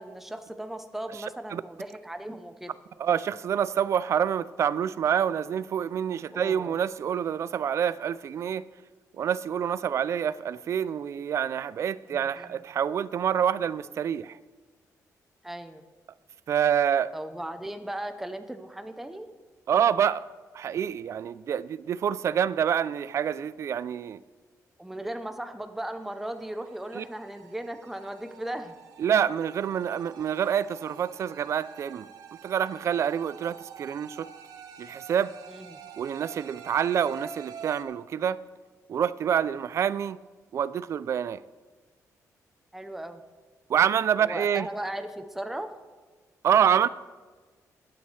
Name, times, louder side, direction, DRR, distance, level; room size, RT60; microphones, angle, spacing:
voice 1, 0.0-2.7 6.3-6.8 12.1-12.6 15.4-15.8 17.1-19.3 24.8-28.8 35.5-35.8 42.7-43.2 44.2-45.7, right 1 dB, 5° right, 0.7 m, -37 dB
voice 2, 3.0-8.7 9.1-14.4 16.5-17.1 19.7-20.2 20.5-24.2 26.9-27.0 29.0-32.1 32.4-34.3 34.8-35.4 36.0-38.4 38.9-40.2 40.5-41.4 43.7-44.7 46.4-46.9, right 8 dB, 50° right, 0.4 m, -27 dB
sound 1, 26.0-37.8, right 6 dB, 90° right, 1.0 m, -47 dB
21.5 x 8.3 x 3.3 m
cardioid pair, 145°, 6 cm